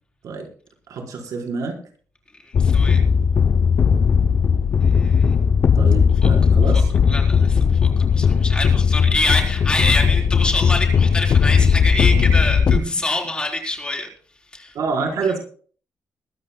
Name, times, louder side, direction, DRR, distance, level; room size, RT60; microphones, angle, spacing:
voice 1, 0.9-1.8 5.7-6.9 9.1-9.2 12.7-12.8 14.7-15.4, right 4 dB, 85° right, 0 dB, 4.4 m, -27 dB
voice 2, 2.4-3.0 4.8-5.3 7.1-14.1 14.5-14.7, left 2 dB, 15° left, 1 dB, 4.0 m, -26 dB
sound 1, 2.5-12.8, left 6 dB, 45° left, 0.6 m, -17 dB
22.0 x 14.0 x 2.2 m, 0.43 s
wide cardioid pair, 155°, 6 cm